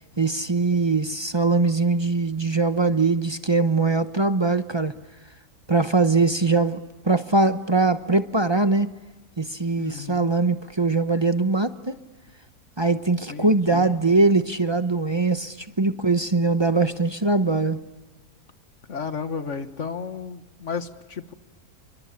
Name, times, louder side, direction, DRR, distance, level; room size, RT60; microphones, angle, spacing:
voice 1, 0.2-4.9 5.7-6.8 7.0-8.9 9.4-12.0 12.8-17.8, right 3 dB, 25° right, 10 dB, 0.7 m, -21 dB
voice 2, 9.8-10.3 13.3-13.9 18.9-21.3, left 5 dB, 50° left, 10 dB, 1.7 m, -33 dB
29.5 x 24.0 x 7.3 m, 1.2 s
omnidirectional pair, 1.7 m